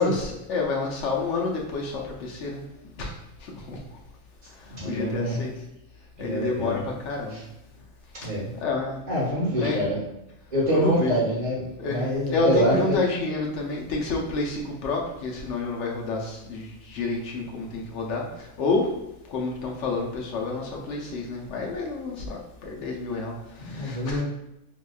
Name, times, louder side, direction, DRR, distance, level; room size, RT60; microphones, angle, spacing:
voice 1, 0.0-2.6 3.0-3.1 3.4-3.8 4.8-5.5 6.2-7.4 8.5-9.0 9.5-9.8 10.7-11.2 11.8-18.9 19.3-24.2, left 3 dB, 65° left, -1 dB, 1.0 m, -29 dB
voice 2, 4.7-5.4 6.2-6.8 7.3-7.4 8.2-8.5 9.1-10.0 10.5-13.0 23.6-24.2, equal, 35° right, -8 dB, 1.0 m, -26 dB
3.9 x 2.9 x 2.3 m, 0.86 s
omnidirectional pair, 1.4 m